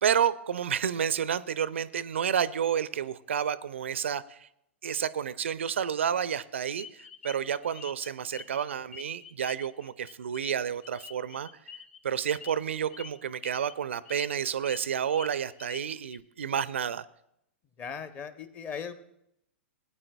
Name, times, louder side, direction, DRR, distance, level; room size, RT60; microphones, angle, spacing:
voice 1, 0.0-4.5 4.8-11.5 12.0-17.1, right 8 dB, 65° right, 17 dB, 0.4 m, -30 dB
sound 1, 6.8-8.6 8.9-12.0 12.3-12.5 12.9-13.1 13.4-13.7 14.1-14.8 15.1-16.2, left 7 dB, 60° left, 0.8 m, -46 dB
voice 2, 17.8-18.9, left 6 dB, 25° left, 11 dB, 0.8 m, -38 dB
18.0 x 8.8 x 2.3 m, 0.77 s
figure-of-eight pair, 105°, 7 cm